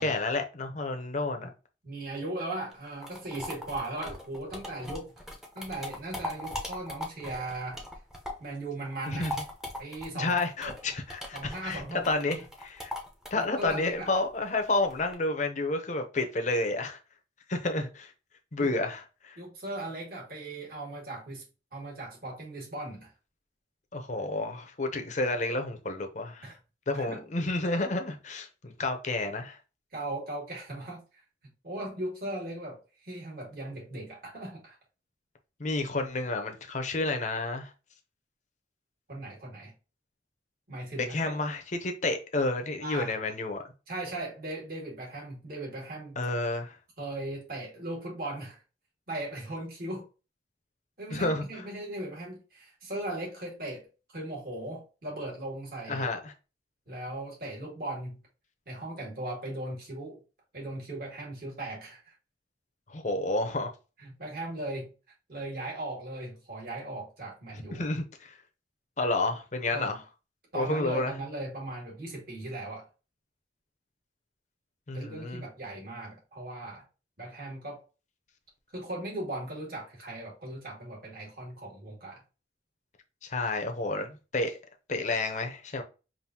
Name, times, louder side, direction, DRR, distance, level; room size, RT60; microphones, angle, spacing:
voice 1, 0.0-1.5 9.1-9.3 10.1-12.9 13.3-17.0 17.5-18.1 18.5-19.4 23.9-26.5 26.9-29.6 35.6-37.7 41.0-43.6 46.2-46.7 51.1-51.4 55.9-56.3 62.9-63.7 67.7-68.3 69.0-69.9 70.5-71.1 74.9-75.4 83.2-84.5 84.9-85.8, left 2 dB, 40° left, 0.7 m, -30 dB
voice 2, 1.8-5.1 5.6-7.8 8.4-9.3 9.8-10.8 11.3-12.1 12.3-12.4 13.3-14.1 18.6-18.7 19.4-21.4 21.7-23.1 26.4-26.6 26.9-27.2 29.9-31.0 31.6-34.8 39.1-39.7 40.7-41.3 42.8-43.2 43.9-46.2 47.0-48.6 49.1-50.1 51.0-53.9 54.1-56.1 56.9-58.2 58.7-60.2 60.5-62.1 64.0-64.9 65.3-67.9 69.7-70.0 70.5-72.9 74.9-76.8 77.2-77.8 78.7-82.2, right 1 dB, 55° right, 2.0 m, -38 dB
sound 1, 2.7-8.5 8.9-15.1, left 1 dB, 5° right, 0.8 m, -40 dB
5.3 x 2.6 x 2.8 m
head